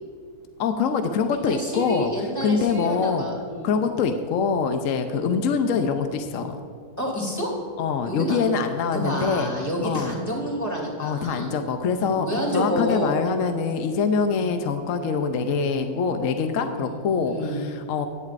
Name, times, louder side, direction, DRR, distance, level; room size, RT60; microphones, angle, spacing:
voice 1, 0.6-3.3 3.6-6.6 7.8-9.5 9.8-10.1 11.0-18.1, left 5 dB, 70° left, 6 dB, 1.0 m, -24 dB
voice 2, 1.5-3.7 5.1-5.3 7.0-7.5 8.0-8.5 8.9-11.6 12.1-13.2 14.3-14.5 16.8-17.0 17.2-17.6, equal, 10° left, -2 dB, 2.7 m, -29 dB
16.0 x 10.5 x 2.5 m, 2.4 s
omnidirectional pair, 1.5 m